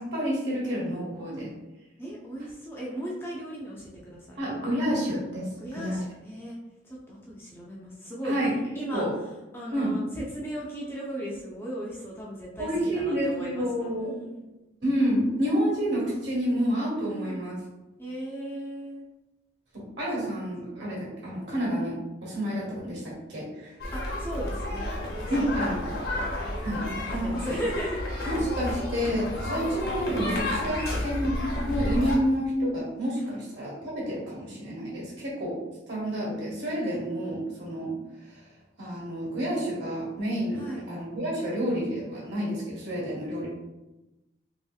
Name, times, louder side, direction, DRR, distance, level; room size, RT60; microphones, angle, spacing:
voice 1, 0.0-1.5 4.4-6.0 8.2-8.5 8.9-9.1 9.7-9.9 12.6-14.1 14.8-17.5 19.7-23.7 25.3-26.8 27.1-27.4 28.2-35.6 35.9-38.0 38.3-38.4 38.8-43.5, equal, 70° right, -4 dB, 1.2 m, -29 dB
voice 2, 2.0-4.4 5.6-6.6 6.8-8.3 8.7-9.1 9.5-14.4 17.1-17.5 18.0-19.0 23.9-28.3 29.5-29.7 40.5-40.9, equal, 10° left, -4 dB, 0.4 m, -37 dB
sound 1, 23.8-32.2, left 1 dB, 55° left, 0.8 m, -31 dB
3.0 x 2.7 x 2.3 m, 1.0 s
head